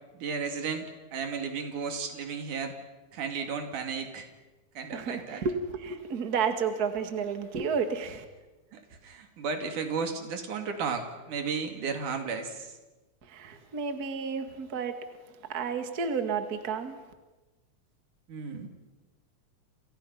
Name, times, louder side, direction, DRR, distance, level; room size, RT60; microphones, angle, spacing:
voice 1, 0.1-2.8 3.1-4.3 4.8-5.4 8.7-12.7 13.5-13.6 18.3-18.7, right 5 dB, 85° right, 4.0 m, -34 dB
voice 2, 4.9-8.3 13.2-15.1 15.5-17.0, right 5 dB, 35° right, 2.0 m, -31 dB
29.0 x 28.0 x 5.8 m
omnidirectional pair, 3.5 m